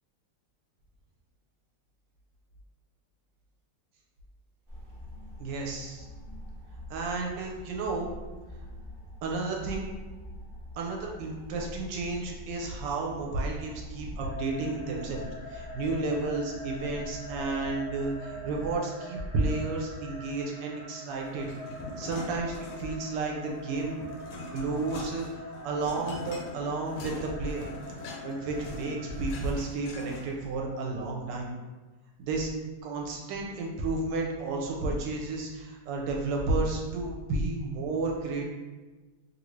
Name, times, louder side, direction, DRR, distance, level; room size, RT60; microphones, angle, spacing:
sound 1, 4.7-18.8, equal, 45° right, 0.4 m, -45 dB
voice 1, 5.4-6.1 6.9-8.1 9.2-9.9 10.8-15.2 15.5-21.5 22.0-23.9 24.5-25.3 25.6-27.7 28.2-31.5 32.2-32.5 32.8-38.5, right 3 dB, 80° right, -1 dB, 1.3 m, -32 dB
sound 2, 14.2-29.3, left 2 dB, 25° right, 0.8 m, -44 dB
sound 3, 21.4-23.1 23.5-30.5, left 2 dB, 75° left, 0.8 m, -43 dB
3.0 x 2.6 x 3.1 m, 1.2 s
omnidirectional pair, 2.0 m